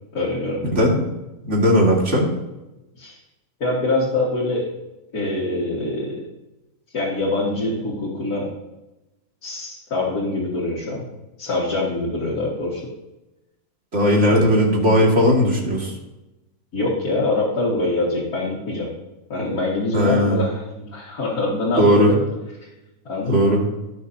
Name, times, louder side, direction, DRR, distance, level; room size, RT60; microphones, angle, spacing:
voice 1, 0.1-0.6 3.0-3.1 3.6-4.7 5.1-6.2 6.9-8.5 9.4-11.0 11.4-12.8 14.3-14.5 16.7-18.9 19.3-22.2 23.1-23.6, left 2 dB, 75° left, -6 dB, 2.4 m, -24 dB
voice 2, 1.4-2.3 13.9-15.9 19.9-20.4 21.8-22.1 23.3-23.6, equal, 50° right, -1 dB, 2.4 m, -17 dB
16.5 x 6.5 x 2.8 m, 0.99 s
omnidirectional pair, 1.6 m